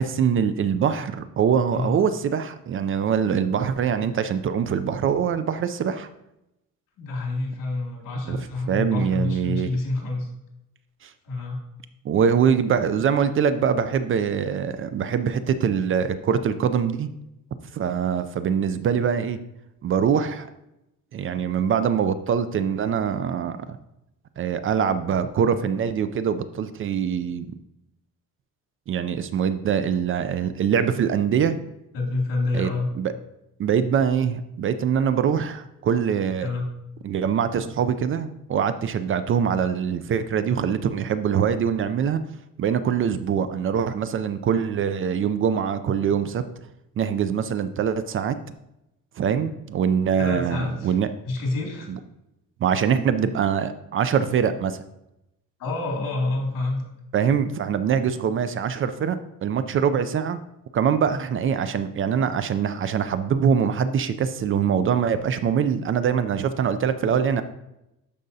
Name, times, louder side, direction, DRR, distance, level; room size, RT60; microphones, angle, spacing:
voice 1, 0.0-6.1 8.3-9.7 11.0-11.1 12.0-17.1 17.7-19.4 19.8-20.5 21.1-23.8 24.4-27.5 28.9-31.6 32.5-32.7 33.0-33.1 33.6-36.5 37.0-42.2 42.6-46.4 47.0-48.4 49.2-51.1 51.9-52.0 52.6-54.8 57.1-60.4 60.7-67.4, right 7 dB, 40° right, 12 dB, 0.4 m, -23 dB
voice 2, 7.0-10.3 11.2-11.6 31.9-32.9 36.4-36.7 50.2-51.0 51.2-51.9 55.6-56.8, left 2 dB, 75° left, 0 dB, 2.4 m, -27 dB
12.0 x 5.0 x 2.7 m, 0.88 s
cardioid pair, 155°, 32 cm